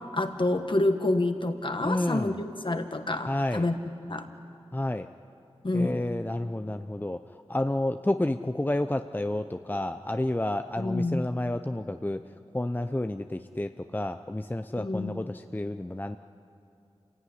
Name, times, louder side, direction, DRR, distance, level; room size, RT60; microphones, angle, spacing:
voice 1, 0.1-3.8 4.1-4.3 5.6-6.0 10.8-11.3 14.8-15.1, left 2 dB, 50° left, 6 dB, 1.7 m, -28 dB
voice 2, 1.8-2.4 3.3-3.6 4.7-5.1 5.7-7.2 7.5-12.2 12.5-16.2, left 1 dB, 15° left, 8 dB, 0.6 m, -30 dB
27.5 x 17.0 x 9.9 m, 2.7 s
wide cardioid pair, 55°, 11 cm